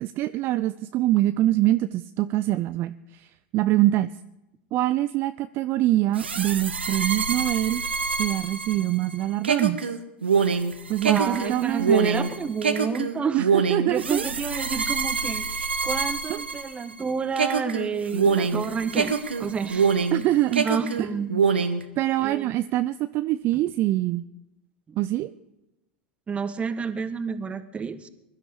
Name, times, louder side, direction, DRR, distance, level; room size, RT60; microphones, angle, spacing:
voice 1, 0.0-4.1 4.7-7.8 8.2-9.9 10.9-11.9 13.3-14.2 16.3-16.4 20.1-20.7 21.0-21.1 22.0-24.3 25.0-25.3, right 15 dB, 40° right, 13 dB, 0.6 m, -24 dB
sound 1, 6.1-17.0 17.4-20.2 20.5-21.8, right 5 dB, 85° right, 1.5 m, -25 dB
voice 2, 11.0-13.5 13.9-19.1 19.4-19.9 20.6-21.4 22.2-22.5 24.9-25.0 26.3-28.1, right 6 dB, 20° right, 12 dB, 1.4 m, -29 dB
21.5 x 12.5 x 4.9 m, 0.92 s
figure-of-eight pair, 90°, 6 cm